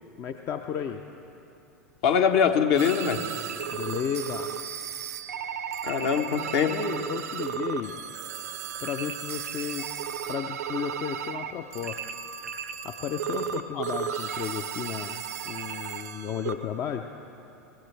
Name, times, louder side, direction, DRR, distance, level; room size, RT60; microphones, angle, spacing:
voice 1, 0.2-1.0 3.7-4.5 6.3-6.4 6.7-8.0 8.8-9.9 10.3-12.0 12.8-17.0, left 8 dB, 35° left, 6 dB, 0.6 m, -33 dB
voice 2, 2.0-3.2 5.8-6.8 13.7-13.8, left 7 dB, 55° left, 5 dB, 1.2 m, -23 dB
sound 1, 2.8-16.6, right 8 dB, 70° right, 0.6 m, -34 dB
24.0 x 16.0 x 3.4 m, 2.8 s
figure-of-eight pair, 85°, 9 cm